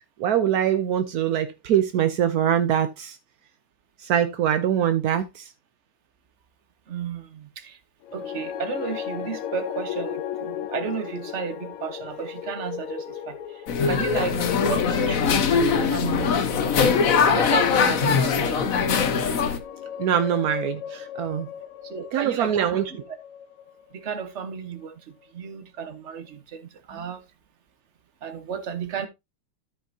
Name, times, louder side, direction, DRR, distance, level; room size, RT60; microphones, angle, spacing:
voice 1, 0.2-3.2 4.0-5.4 20.0-21.5 22.1-22.8, right 9 dB, 75° right, 0.8 m, -23 dB
voice 2, 6.9-7.8 8.1-18.9 21.8-23.0 23.9-27.2 28.2-29.1, right 7 dB, 45° right, 1.1 m, -33 dB
sound 1, 8.0-24.3, left 10 dB, 90° left, 1.8 m, -35 dB
sound 2, 13.7-19.6, left 6 dB, 50° left, 1.1 m, -21 dB
13.5 x 5.5 x 2.7 m
omnidirectional pair, 2.4 m